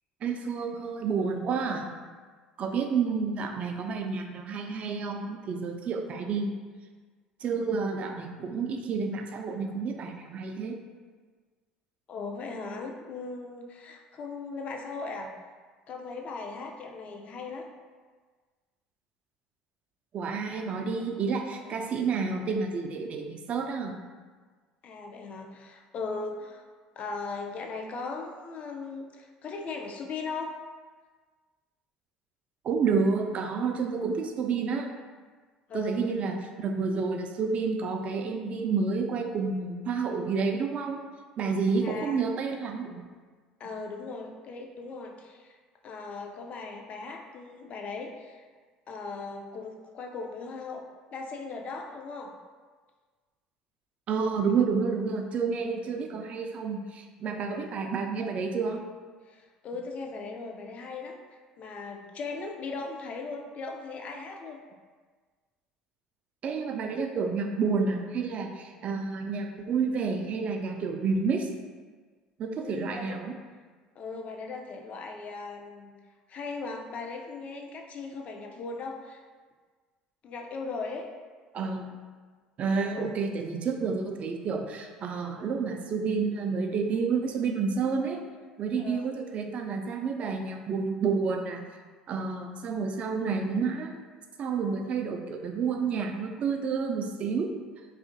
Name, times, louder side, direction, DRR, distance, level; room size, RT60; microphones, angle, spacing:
voice 1, 0.2-1.9 2.6-6.5 7.4-10.8 20.1-24.0 32.6-34.9 35.7-41.0 41.4-43.0 54.1-58.8 66.4-71.5 72.4-73.3 81.5-81.9 82.6-88.2 88.6-91.6 92.1-93.9 94.4-97.5, right 5 dB, 45° right, 4 dB, 0.3 m, -29 dB
voice 2, 12.1-15.3 15.9-17.6 21.7-21.9 24.8-26.6 27.0-30.5 35.7-36.0 41.8-42.2 43.6-45.6 45.8-48.4 48.9-52.3 55.9-56.1 57.4-57.8 59.3-61.2 61.6-64.6 72.6-73.2 74.0-75.9 76.3-79.2 80.2-81.1 82.8-83.2 88.8-89.1, left 4 dB, 45° left, 2 dB, 0.4 m, -38 dB
2.7 x 2.4 x 2.5 m, 1.5 s
hypercardioid pair, 70°, 3 cm